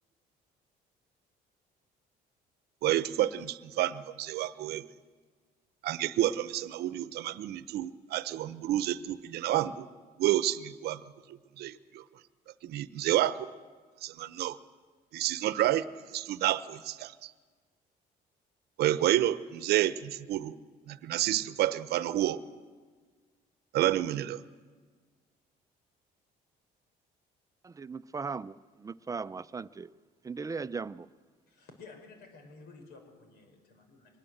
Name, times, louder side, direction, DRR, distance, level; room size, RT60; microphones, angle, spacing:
voice 1, 2.8-4.9 5.8-9.9 10.2-12.0 12.6-13.5 14.0-14.6 15.1-17.3 18.8-20.6 20.9-22.4 23.7-24.4, right 13 dB, 75° right, 0.9 m, -29 dB
voice 2, 27.6-29.9 30.2-31.1, right 4 dB, 20° right, 0.6 m, -38 dB
voice 3, 31.5-34.2, left 4 dB, 75° left, 5.7 m, -52 dB
23.5 x 20.0 x 7.9 m
cardioid pair, 110°, 17 cm